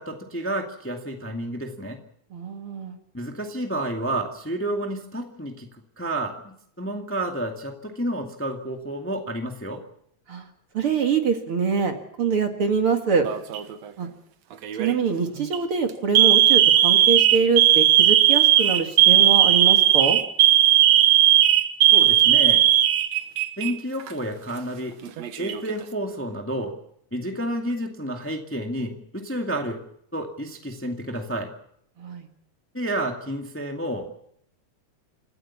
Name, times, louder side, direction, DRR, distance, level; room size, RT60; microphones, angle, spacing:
voice 1, 0.0-2.0 3.1-5.7 6.0-9.8 21.9-22.7 23.6-24.9 25.4-26.8 27.1-29.8 30.1-31.5 32.7-34.3, right 1 dB, 5° left, 3 dB, 1.6 m, -30 dB
voice 2, 2.3-3.0 10.3-10.5 10.7-13.3 14.0-14.1 14.8-20.2 32.0-32.2, right 5 dB, 50° right, 5 dB, 2.5 m, -24 dB
Alarm, 13.2-13.8 14.6-14.9 15.4-15.6 16.1-23.7 24.0-24.1 25.0-25.7, right 12 dB, 70° right, 2.4 m, -17 dB
28.0 x 14.5 x 7.3 m, 0.69 s
omnidirectional pair, 3.3 m